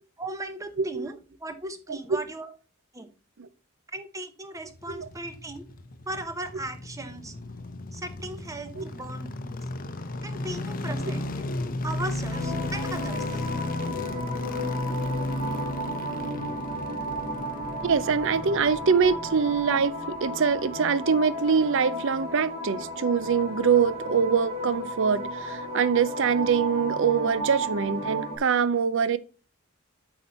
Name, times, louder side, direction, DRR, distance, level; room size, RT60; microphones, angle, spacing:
voice 1, 0.2-2.5 2.9-3.1 3.9-5.7 6.1-7.3 7.9-9.6 10.2-11.5 11.8-13.2, right 1 dB, 15° right, 0.9 m, -37 dB
sound 1, 4.6-19.8 20.1-20.2, left 2 dB, 40° left, 0.7 m, -34 dB
sound 2, 12.3-28.4, equal, 30° right, 3.4 m, -34 dB
voice 2, 17.8-29.2, right 6 dB, 60° right, 0.5 m, -24 dB
8.2 x 5.0 x 4.1 m
head